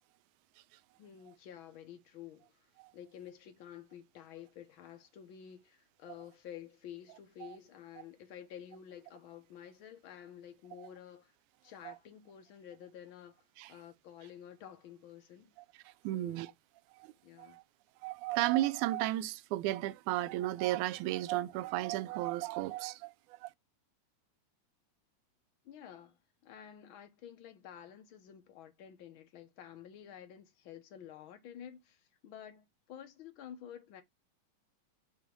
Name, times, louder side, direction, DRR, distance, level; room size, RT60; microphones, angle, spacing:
voice 1, 1.0-2.7 2.9-11.3 11.6-15.5 16.1-16.5 17.2-17.6 25.6-34.0, left 9 dB, 65° left, 1.3 m, -51 dB
voice 2, 16.0-16.5 17.0-17.1 17.4-17.6 18.0-23.5, right 16 dB, 80° right, 1.9 m, -34 dB
6.2 x 2.9 x 5.3 m
omnidirectional pair, 3.6 m